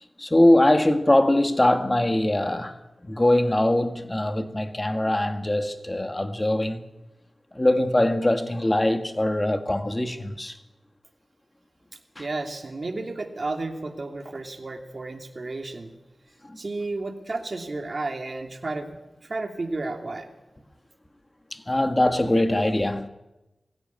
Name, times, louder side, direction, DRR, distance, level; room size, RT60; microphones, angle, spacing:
voice 1, 0.2-2.8 3.0-6.8 7.5-10.6 12.2-12.3 16.4-16.6 21.5-23.1, left 1 dB, 20° left, 1.8 m, -22 dB
voice 2, 12.2-15.9 16.6-18.9 19.2-20.3, right 2 dB, 50° right, 2.9 m, -32 dB
22.0 x 16.0 x 9.6 m
wide cardioid pair, 85°, 0 cm